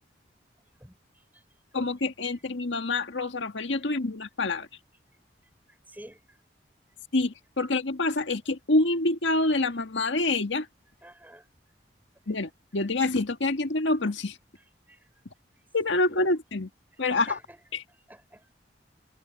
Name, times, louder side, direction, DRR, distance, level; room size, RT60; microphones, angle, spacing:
voice 1, 1.7-4.7 7.1-10.7 12.3-14.3 15.7-16.7 17.0-17.4 17.7-17.8, left 2 dB, 85° left, 1.7 m, -26 dB
voice 2, 5.9-6.2 11.0-11.4 14.9-15.1 16.1-16.3 17.1-17.6 18.1-18.5, right 1 dB, 10° right, 4.4 m, -49 dB
head